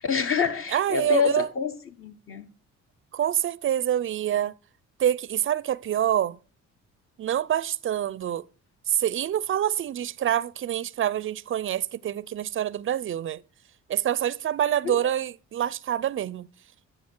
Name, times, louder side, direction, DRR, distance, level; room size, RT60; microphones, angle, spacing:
voice 1, 0.0-1.7 2.0-2.5 14.8-15.0, left 6 dB, 45° left, 1.2 m, -26 dB
voice 2, 0.7-1.5 3.1-4.5 5.0-6.4 7.2-8.5 8.9-13.4 13.9-16.5, right 11 dB, 45° right, 0.4 m, -26 dB
10.5 x 6.8 x 4.5 m
cardioid pair, 90°, 30 cm